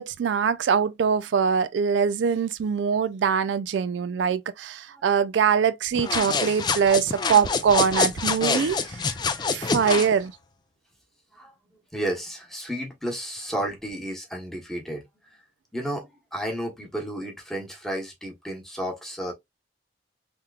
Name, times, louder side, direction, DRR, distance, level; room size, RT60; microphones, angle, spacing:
voice 1, 0.0-9.0 9.5-10.3, right 6 dB, 85° right, 0.3 m, -23 dB
sound 1, 6.0-10.1, left 4 dB, 25° left, 0.4 m, -26 dB
voice 2, 8.4-9.7 11.3-11.5 11.9-15.0 15.7-19.3, right 1 dB, ahead, 0.9 m, -33 dB
3.5 x 2.9 x 2.3 m
head